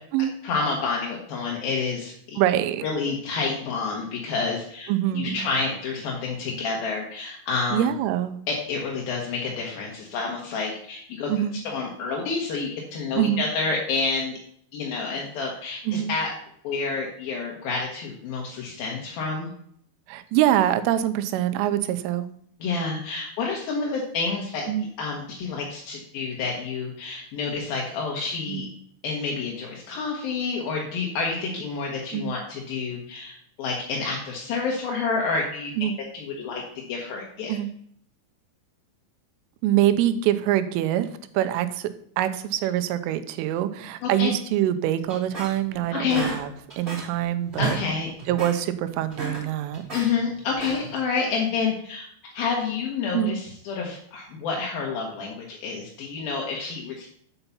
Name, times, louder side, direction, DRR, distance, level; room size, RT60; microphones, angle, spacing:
voice 1, 0.4-2.4 2.8-7.9 8.5-14.4 14.7-16.3 16.6-19.5 22.6-28.7 29.0-37.6 44.0-44.3 45.9-46.3 47.6-48.1 49.9-57.1, left 4 dB, 75° left, -1 dB, 2.2 m, -29 dB
voice 2, 2.4-2.9 4.9-5.5 7.7-8.4 11.3-11.6 13.2-13.4 15.9-16.1 20.1-22.3 24.7-24.9 28.5-28.6 32.1-32.3 35.8-35.9 37.5-37.7 39.6-41.1 41.3-41.9 42.2-46.5 46.8-47.8 48.3-49.8 53.1-53.4, right 12 dB, 85° right, 10 dB, 3.1 m, -24 dB
sound 1, 45.1-45.8 46.1-47.2 47.5-47.9 48.2-48.6 49.0-50.1 50.5-51.0, right 3 dB, 20° right, 2.1 m, -33 dB
7.0 x 5.6 x 6.9 m, 0.65 s
omnidirectional pair, 5.9 m